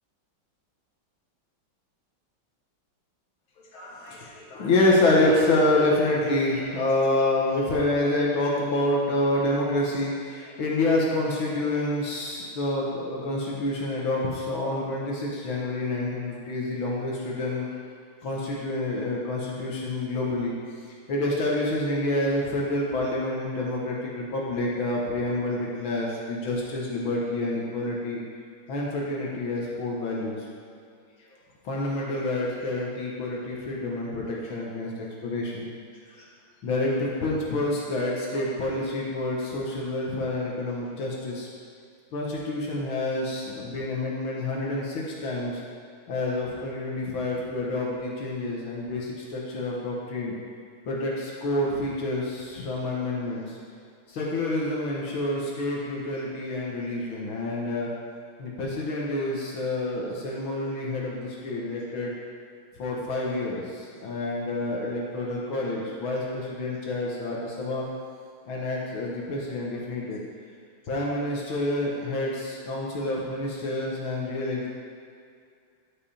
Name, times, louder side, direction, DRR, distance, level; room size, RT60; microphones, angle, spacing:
voice 1, 3.6-17.7 18.2-20.5 21.1-28.2 28.7-30.4 31.6-35.7 36.1-36.3 36.6-41.5 42.1-45.6 46.1-50.3 50.9-53.6 54.1-57.9 58.4-62.1 62.8-67.8 68.5-70.2 70.9-74.7, left 2 dB, 65° left, -4 dB, 2.0 m, -28 dB
10.5 x 5.5 x 4.3 m, 2.3 s
omnidirectional pair, 2.4 m